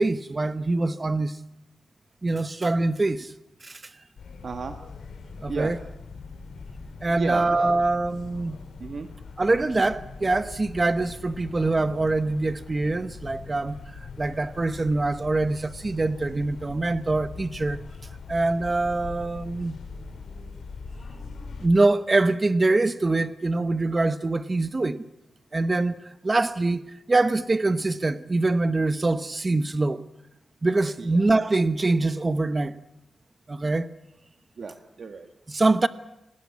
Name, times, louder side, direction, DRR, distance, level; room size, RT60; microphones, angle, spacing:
voice 1, 0.0-1.4 2.2-3.3 3.6-3.9 5.4-5.8 7.0-8.6 9.4-17.8 18.3-19.8 21.6-25.0 25.5-26.8 27.1-30.0 30.6-32.8 33.5-33.9 35.5-35.9, right 2 dB, 25° right, 0.9 m, -24 dB
sound 1, 4.2-21.7, left 4 dB, 85° left, 4.2 m, -42 dB
voice 2, 4.4-4.8 5.5-5.7 7.1-7.7 8.8-9.1 31.0-31.3 34.6-35.3, right 5 dB, 55° right, 1.4 m, -33 dB
27.0 x 19.5 x 8.3 m
wide cardioid pair, 135°, 0 cm